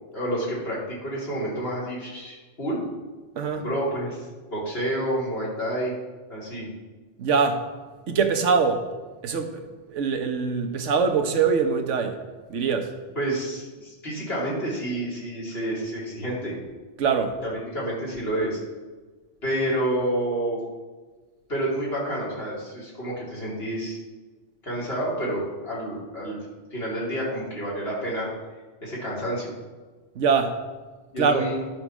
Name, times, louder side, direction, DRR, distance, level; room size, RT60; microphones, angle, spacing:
voice 1, 0.1-2.8 3.6-5.9 6.3-6.7 13.1-16.5 17.4-18.6 19.4-20.6 21.5-24.0 24.6-26.4 26.7-28.3 28.8-29.5 31.1-31.6, right 1 dB, 55° left, 3.3 m, -29 dB
voice 2, 3.4-3.7 7.2-7.7 8.1-8.9 9.2-12.2 12.5-12.9 17.0-17.4 30.1-30.6 31.2-31.5, right 5 dB, 80° right, 1.2 m, -23 dB
12.0 x 4.4 x 6.1 m
omnidirectional pair, 1.2 m